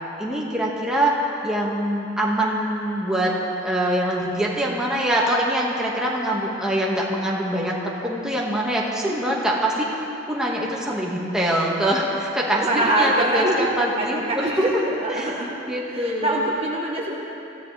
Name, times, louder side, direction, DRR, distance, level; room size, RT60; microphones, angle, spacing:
voice 1, 0.2-1.2 1.4-3.3 3.6-9.9 10.3-14.7 15.1-15.3 15.7-16.4, right 1 dB, 5° right, -5 dB, 2.0 m, -24 dB
voice 2, 12.6-15.5 15.9-17.2, right 1 dB, 35° right, -3 dB, 1.4 m, -24 dB
23.0 x 15.0 x 3.5 m, 2.8 s
head